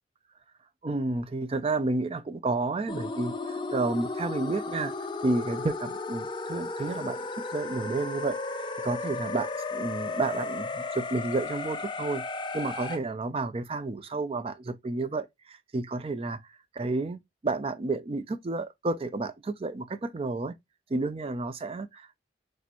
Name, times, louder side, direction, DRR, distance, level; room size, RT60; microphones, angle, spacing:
voice 1, 0.8-12.2 12.5-20.6 20.9-22.2, right 3 dB, 35° right, 0.4 m, -31 dB
sound 1, 2.9-13.0, left 3 dB, 25° left, 0.5 m, -34 dB
4.2 x 3.2 x 3.0 m
head